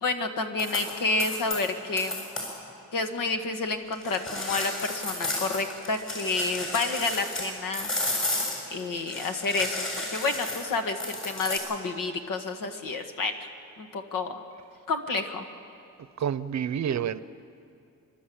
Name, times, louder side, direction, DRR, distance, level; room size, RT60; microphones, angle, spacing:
voice 1, 0.0-2.3 2.9-7.9 8.7-13.5 13.8-14.4 14.9-15.5, left 3 dB, 85° left, 1.8 m, -29 dB
sound 1, 0.6-0.9 1.2-1.6 2.0-2.5 3.9-7.5 7.7-11.6, left 1 dB, 40° left, 6.7 m, -32 dB
voice 2, 16.2-17.2, right 8 dB, 60° right, 0.7 m, -28 dB
29.0 x 12.0 x 8.7 m
wide cardioid pair, 120°, 32 cm